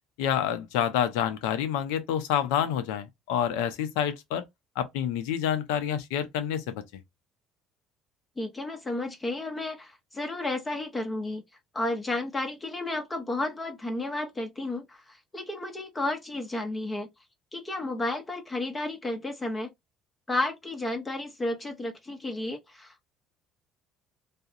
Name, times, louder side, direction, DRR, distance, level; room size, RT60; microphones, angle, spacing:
voice 1, 0.2-4.4 4.8-6.8, left 9 dB, 80° left, 0.5 m, -28 dB
voice 2, 8.4-11.4 11.7-17.1 17.5-19.7 20.3-23.1, left 2 dB, 25° left, 0.7 m, -32 dB
2.4 x 2.1 x 2.6 m
supercardioid pair, 70°, 0 cm